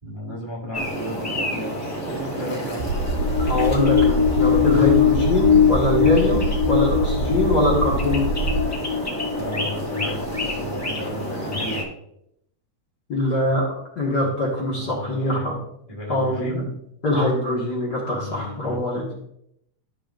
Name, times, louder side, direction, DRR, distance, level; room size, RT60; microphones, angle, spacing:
voice 1, 0.0-3.0 8.6-8.8 9.3-11.9 13.3-13.5 14.2-14.4 14.7-15.5 15.9-16.6 18.1-18.8, left 1 dB, 20° right, -5 dB, 1.1 m, -34 dB
sound 1, 0.7-11.8, equal, 15° left, 0.6 m, -30 dB
sound 2, 2.8-8.6, right 3 dB, 75° right, 2.5 m, -25 dB
sound 3, 3.0-10.7, left 8 dB, 70° left, 3.0 m, -22 dB
voice 2, 3.5-8.3 13.1-13.7 13.9-15.5 16.1-16.7 17.0-19.0, left 1 dB, 40° left, -4 dB, 1.7 m, -23 dB
13.0 x 5.8 x 2.6 m, 0.76 s
omnidirectional pair, 3.7 m